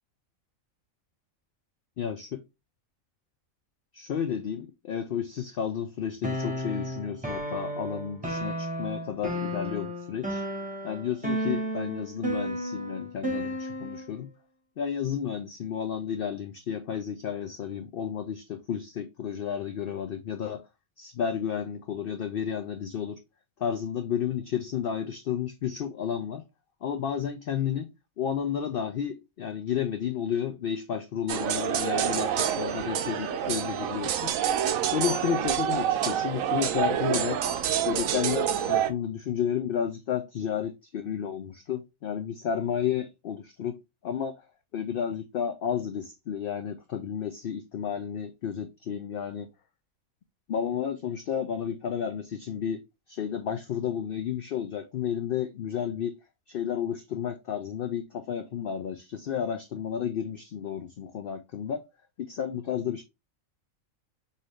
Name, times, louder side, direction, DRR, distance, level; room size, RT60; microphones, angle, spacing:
voice 1, 2.0-2.4 3.9-10.4 10.8-14.3 14.8-20.6 21.0-23.2 23.6-26.4 26.8-27.9 28.2-34.3 34.9-37.4 37.9-43.8 44.0-44.3 44.7-49.5 50.5-52.8 53.1-56.2 56.5-61.8 62.3-63.0, left 8 dB, 65° left, 0.5 m, -32 dB
sound 1, 6.2-14.1, equal, 5° right, 0.9 m, -33 dB
sound 2, 31.3-38.9, right 9 dB, 75° right, 1.0 m, -27 dB
5.5 x 2.6 x 3.1 m
omnidirectional pair, 1.4 m